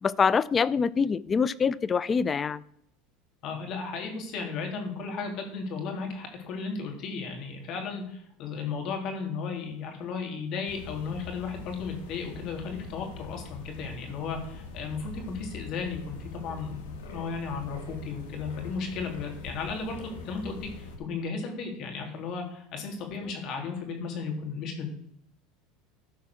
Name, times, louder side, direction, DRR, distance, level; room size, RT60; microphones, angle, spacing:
voice 1, 0.0-2.6, left 6 dB, 30° left, 0.4 m, -25 dB
voice 2, 3.4-24.9, left 5 dB, 55° left, 3.0 m, -35 dB
sound 1, 10.6-21.0, left 4 dB, 80° left, 2.0 m, -43 dB
13.0 x 4.7 x 6.3 m
hypercardioid pair, 90°, 0 cm